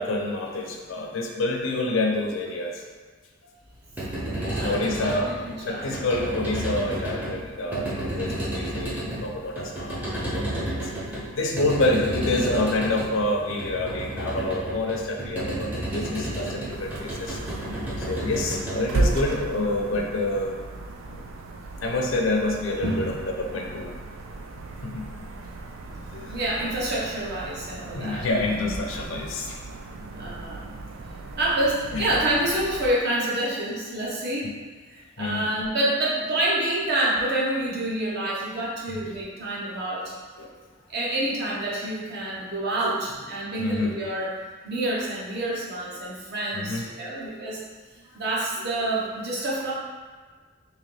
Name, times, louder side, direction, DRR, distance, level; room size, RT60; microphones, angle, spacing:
voice 1, 0.0-2.8 4.6-5.3 5.6-17.4 18.0-20.5 21.8-23.9 24.8-25.1 26.1-26.4 27.9-29.6 31.9-32.1 35.2-35.5 38.9-39.0 40.4-40.5 43.6-43.9 46.5-46.8, left 2 dB, 70° left, 1 dB, 0.6 m, -27 dB
sound 1, 3.7-19.9, right 1 dB, 10° right, 0.6 m, -32 dB
voice 2, 4.3-5.9 17.6-17.8 21.1-21.3 22.8-23.1 26.2-28.7 30.2-30.6 31.4-34.5 34.9-40.1 40.9-44.3 44.6-47.6 48.1-49.7, right 1 dB, 55° right, -6 dB, 1.0 m, -28 dB
sound 2, 16.7-32.9, right 2 dB, 70° right, 0.4 m, -35 dB
3.8 x 3.0 x 3.3 m, 1.5 s
head